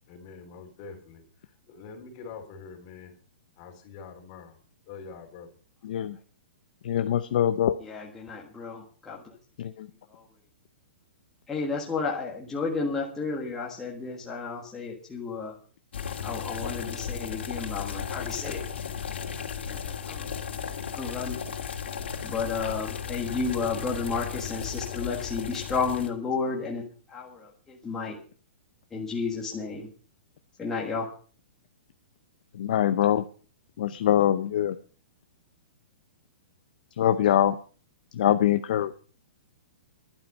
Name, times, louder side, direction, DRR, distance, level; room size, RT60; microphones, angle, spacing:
voice 1, 0.1-1.2 1.7-3.1 3.6-4.5 4.9-5.5, left 5 dB, 30° left, 3 dB, 3.3 m, -44 dB
voice 2, 5.8-6.2 6.8-7.7 9.6-9.9 32.6-33.2 33.8-34.7 37.0-37.6 38.2-38.9, left 11 dB, 50° left, 10 dB, 0.6 m, -23 dB
voice 3, 7.8-9.2 10.1-10.2 11.5-15.5 16.2-18.6 19.7-19.8 20.1-20.3 20.6-21.4 22.2-26.8 27.1-28.1 28.9-29.9 30.6-31.1, left 4 dB, 10° left, -3 dB, 1.6 m, -32 dB
sound 1, 15.9-26.1, left 7 dB, 85° left, 2.6 m, -35 dB
12.0 x 11.5 x 5.4 m, 0.40 s
hypercardioid pair, 175°, 6 cm